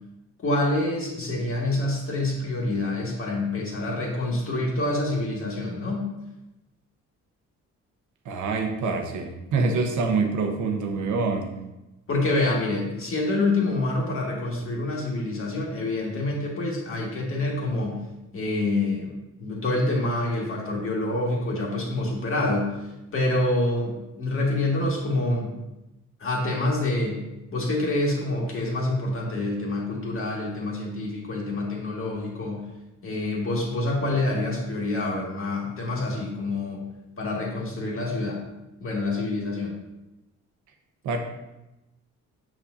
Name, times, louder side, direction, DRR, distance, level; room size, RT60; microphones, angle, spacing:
voice 1, 0.4-6.1 12.1-18.1 18.3-22.7 23.1-25.6 26.2-27.2 27.5-32.6 33.0-36.8 37.2-38.4 38.8-39.7, left 2 dB, 45° left, -2 dB, 2.0 m, -27 dB
voice 2, 8.2-11.5 41.0-41.2, right 4 dB, 75° right, 4 dB, 1.0 m, -25 dB
6.4 x 6.0 x 2.6 m, 0.98 s
cardioid pair, 90°, 30 cm